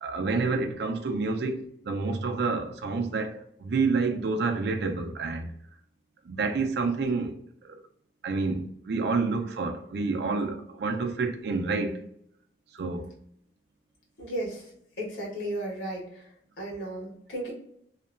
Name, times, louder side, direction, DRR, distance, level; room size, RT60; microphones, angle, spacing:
voice 1, 0.0-5.5 6.3-7.4 7.6-7.8 8.2-12.0 12.8-13.1, right 4 dB, 65° right, 0.4 m, -28 dB
voice 2, 14.2-14.7 15.0-16.3 16.6-17.5, right 1 dB, 85° left, 1.3 m, -34 dB
2.8 x 2.2 x 2.4 m
head